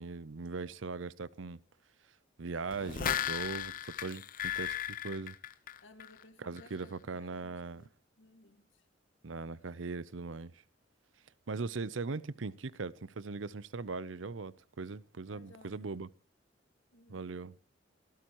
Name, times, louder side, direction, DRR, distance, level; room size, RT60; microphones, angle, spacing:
voice 1, 0.0-1.6 2.4-5.3 6.4-7.9 9.2-10.6 11.5-16.1 17.1-17.5, right 4 dB, 90° right, 0.7 m, -40 dB
sound 1, 2.7-6.2 6.6-6.7, left 10 dB, 45° left, 0.8 m, -36 dB
voice 2, 5.8-8.9 15.3-15.9 16.9-17.3, left 2 dB, 85° left, 2.0 m, -59 dB
26.5 x 15.5 x 3.0 m
head